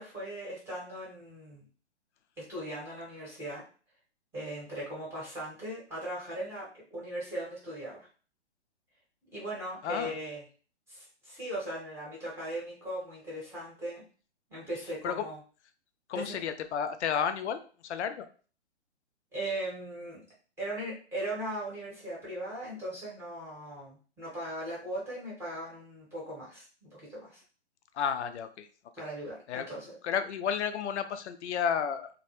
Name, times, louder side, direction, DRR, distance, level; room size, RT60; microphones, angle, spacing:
voice 1, 0.0-1.7 2.5-3.6 4.3-8.1 9.3-10.4 10.9-14.0 14.5-15.4 16.1-16.4 19.3-20.2 20.6-27.4 28.9-29.9, right 1 dB, 5° right, -7 dB, 0.8 m, -38 dB
voice 2, 9.8-10.2 15.0-15.2 16.1-18.3 27.9-28.7 29.5-29.7 30.0-32.1, left 7 dB, 75° left, 9 dB, 0.5 m, -32 dB
2.2 x 2.1 x 2.9 m, 0.39 s
hypercardioid pair, 140°, 35 cm